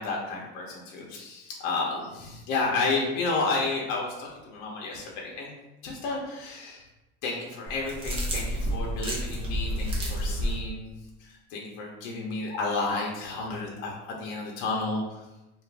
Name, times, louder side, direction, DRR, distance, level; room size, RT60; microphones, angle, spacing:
voice 1, 0.0-5.5 5.8-6.8 7.2-10.9 11.2-15.2, left 3 dB, 55° left, -2 dB, 0.7 m, -31 dB
sound 1, 7.7-10.6, equal, 20° right, 0.4 m, -30 dB
2.5 x 2.4 x 3.2 m, 0.98 s
cardioid pair, 165°, 31 cm